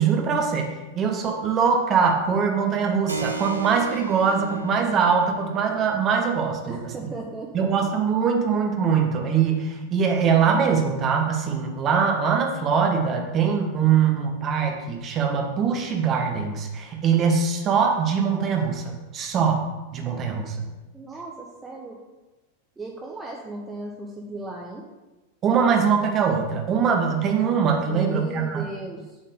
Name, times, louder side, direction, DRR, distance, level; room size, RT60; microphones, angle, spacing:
voice 1, 0.0-6.8 7.5-19.6 19.9-20.6 25.4-28.6, right 6 dB, 30° right, 2 dB, 1.4 m, -22 dB
Keyboard (musical), 3.1-11.3, right 3 dB, 80° right, 0.7 m, -39 dB
voice 2, 6.7-7.7 20.9-22.0 22.8-24.8 27.9-29.2, right 2 dB, 15° right, -1 dB, 1.0 m, -36 dB
7.5 x 4.5 x 6.7 m, 1.1 s
figure-of-eight pair, 90°, 0 cm